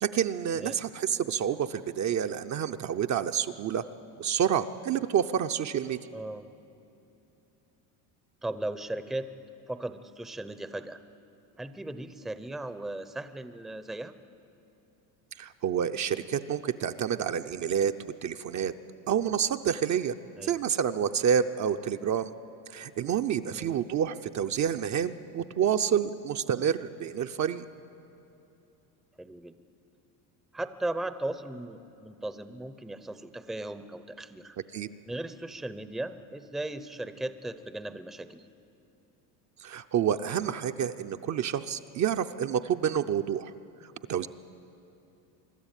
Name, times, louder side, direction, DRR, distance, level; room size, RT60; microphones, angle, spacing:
voice 1, 0.0-3.8 4.2-6.0 15.4-17.9 18.2-18.7 19.1-20.1 20.4-22.3 22.7-27.6 34.7-34.9 39.6-43.5 44.1-44.3, right 8 dB, 40° right, 7 dB, 0.6 m, -28 dB
voice 2, 6.1-6.4 8.4-9.3 9.7-11.0 11.6-14.1 20.4-20.6 23.5-23.7 29.2-29.5 30.5-34.6 35.1-38.4, right 1 dB, ahead, 11 dB, 0.6 m, -37 dB
24.0 x 12.5 x 9.0 m, 2.9 s
supercardioid pair, 105°, 46 cm